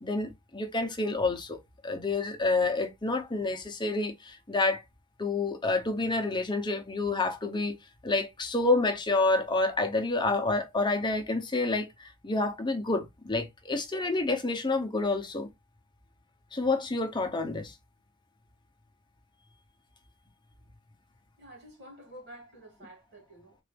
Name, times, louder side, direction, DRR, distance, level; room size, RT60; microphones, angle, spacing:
voice 1, 0.0-1.6 1.8-4.8 5.2-7.8 8.0-15.5 16.5-17.7, left 3 dB, 20° left, 0.8 m, -28 dB
voice 2, 21.4-23.6, right 1 dB, 50° right, 2.4 m, -50 dB
3.8 x 2.7 x 3.4 m
head